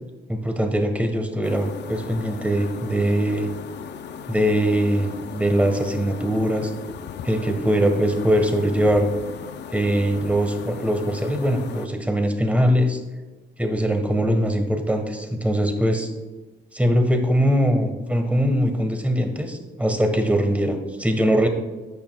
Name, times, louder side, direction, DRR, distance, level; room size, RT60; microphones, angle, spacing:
voice 1, 0.3-3.5 4.3-6.7 7.2-9.1 9.7-13.0 13.6-16.1 16.7-21.5, equal, 5° right, 5 dB, 1.5 m, -21 dB
sound 1, 1.4-11.9, left 7 dB, 60° left, 0.6 m, -37 dB
12.0 x 8.5 x 2.4 m, 1.2 s
cardioid pair, 90°, 20 cm